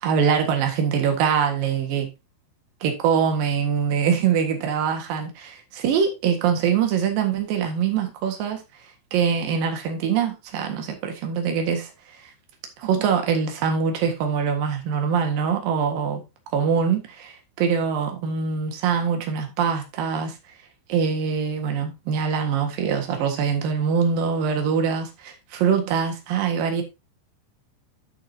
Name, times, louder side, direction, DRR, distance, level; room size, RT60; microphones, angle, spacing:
voice 1, 0.0-2.1 2.8-8.6 9.1-11.9 12.8-16.2 16.5-20.3 20.9-26.8, right 7 dB, 60° right, 2.9 m, -23 dB
13.0 x 6.5 x 2.8 m
omnidirectional pair, 5.5 m